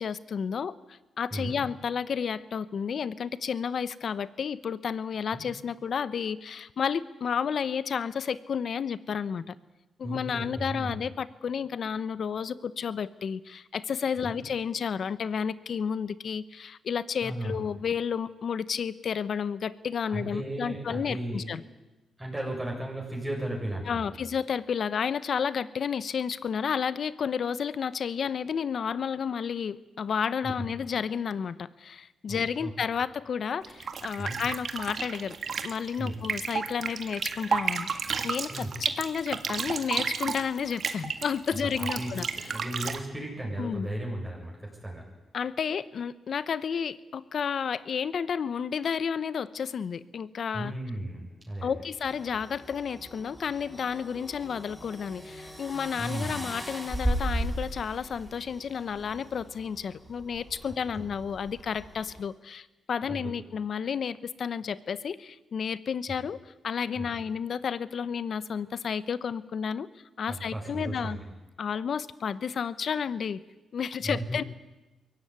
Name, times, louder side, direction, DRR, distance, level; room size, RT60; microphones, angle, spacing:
voice 1, 0.0-9.5 10.0-21.6 23.9-35.3 35.6-42.3 43.6-43.9 45.3-50.7 51.6-66.4 66.6-69.9 70.2-71.2 71.6-73.4 73.7-74.4, left 7 dB, 55° left, 16 dB, 1.0 m, -31 dB
voice 2, 10.0-11.0 14.2-14.4 17.2-17.6 20.1-21.4 22.2-24.3 30.4-30.6 32.3-32.7 34.2-34.4 36.0-36.2 38.5-38.7 41.5-42.1 42.5-45.0 50.5-51.7 56.0-56.4 60.9-61.1 63.1-63.2 66.1-66.2 67.0-67.1 70.3-71.2 74.0-74.4, right 1 dB, 10° right, -2 dB, 7.2 m, -35 dB
sound 1, 33.6-43.0, right 6 dB, 55° right, 1.9 m, -32 dB
sound 2, 52.0-62.2, right 1 dB, 5° left, 7.8 m, -37 dB
22.5 x 17.5 x 9.6 m, 1.1 s
cardioid pair, 90°, 0 cm